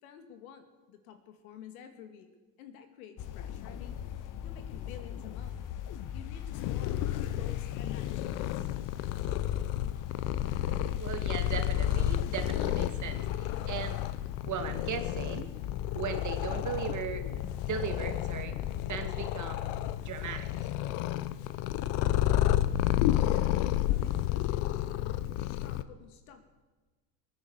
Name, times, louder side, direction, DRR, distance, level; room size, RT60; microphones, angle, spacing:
voice 1, 0.0-2.3 2.6-5.6 6.1-8.7 23.1-26.4, left 8 dB, 85° left, 7 dB, 2.2 m, -51 dB
sound 1, 3.2-18.8, left 9 dB, 50° left, 1.1 m, -40 dB
Purr, 6.5-25.8, left 13 dB, 70° left, 1.0 m, -31 dB
voice 2, 11.0-14.0 14.5-15.5 15.9-17.3 17.6-18.5 18.9-19.7 20.0-20.5, right 7 dB, 45° right, 6 dB, 2.4 m, -37 dB
21.0 x 9.6 x 6.6 m, 1.2 s
supercardioid pair, 95°, 42 cm